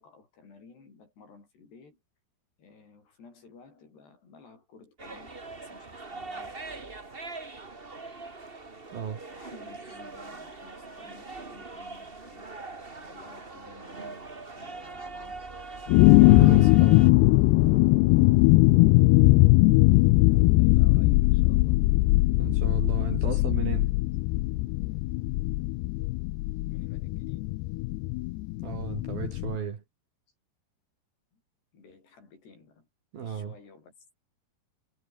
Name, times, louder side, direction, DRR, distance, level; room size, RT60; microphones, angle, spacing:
voice 1, 0.0-2.0 2.6-6.6 9.1-12.5 13.0-14.3 14.5-15.5 20.2-21.8 23.2-23.5 26.7-27.6 31.3-31.4 31.7-32.9 33.2-34.0, left 4 dB, 65° left, 9.0 m, -54 dB
sound 1, 5.0-17.1, right 3 dB, 40° right, 0.8 m, -42 dB
voice 2, 8.9-9.2 15.9-17.1 22.4-23.9 28.6-29.8 33.1-33.5, right 7 dB, 55° right, 4.3 m, -35 dB
sound 2, 15.9-29.6, left 21 dB, 80° left, 2.5 m, -20 dB
omnidirectional pair, 5.2 m